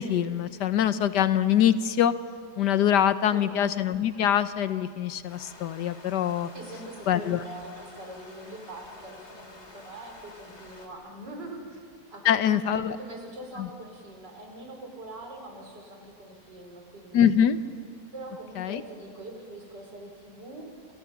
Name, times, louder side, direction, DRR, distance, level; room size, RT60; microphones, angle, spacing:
voice 1, 0.0-2.1 2.6-6.5 7.1-7.4 12.2-13.0 13.6-13.7 17.1-17.6 18.6-18.8, left 9 dB, 80° left, 13 dB, 1.5 m, -24 dB
sound 1, 5.3-10.9, left 2 dB, 40° left, 3.1 m, -49 dB
voice 2, 6.5-11.8 12.1-17.3 18.1-20.9, right 1 dB, 85° right, 2 dB, 5.6 m, -43 dB
29.0 x 27.5 x 7.2 m, 2.2 s
omnidirectional pair, 1.8 m